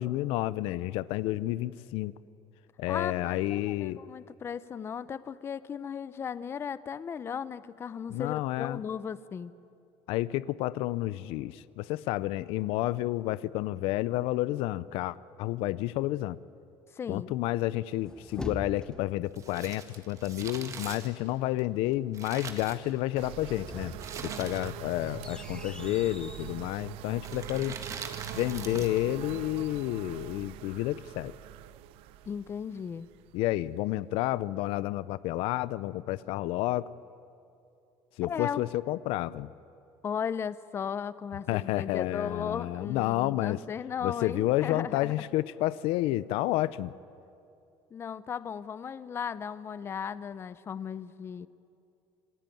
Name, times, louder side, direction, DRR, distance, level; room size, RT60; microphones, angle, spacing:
voice 1, 0.0-2.1 2.8-4.0 8.1-8.8 10.1-16.4 17.1-23.9 24.2-27.8 28.3-31.3 33.3-36.9 38.2-39.5 41.5-43.6 44.0-46.9, left 16 dB, 75° left, 18 dB, 0.6 m, -30 dB
voice 2, 2.9-9.5 16.9-17.3 32.2-33.1 38.2-38.7 40.0-45.1 47.9-51.5, left 7 dB, 25° left, 16 dB, 0.6 m, -36 dB
sound 1, 17.7-19.2 23.3-26.6, left 1 dB, 10° left, 1.0 m, -44 dB
Crumpling crinkling, 19.3-23.3 24.0-25.0 25.2-25.3 26.2-26.5 27.2-29.1 29.4-29.5, right 6 dB, 35° right, 1.9 m, -42 dB
sound 2, 23.2-33.8, right 14 dB, 75° right, 0.7 m, -43 dB
27.5 x 19.5 x 9.2 m, 2.7 s
cardioid pair, 155°, 10 cm